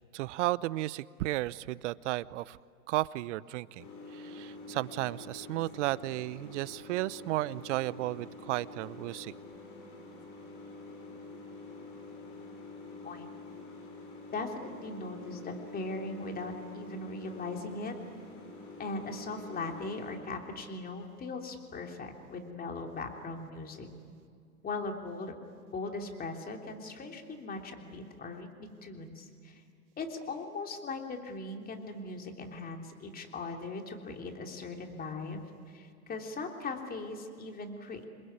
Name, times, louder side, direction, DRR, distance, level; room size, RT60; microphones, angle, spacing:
voice 1, 0.1-2.6 2.9-3.9 4.1-9.3, right 17 dB, 50° right, 19 dB, 0.8 m, -33 dB
sound 1, 3.8-20.2, left 3 dB, 40° left, 7.1 m, -47 dB
voice 2, 14.3-17.9 18.8-23.9 24.6-25.3 25.7-29.5 30.0-35.4 35.7-38.0, left 3 dB, 20° left, 3 dB, 3.2 m, -39 dB
28.0 x 21.5 x 9.6 m, 2.3 s
hypercardioid pair, 115°, 45 cm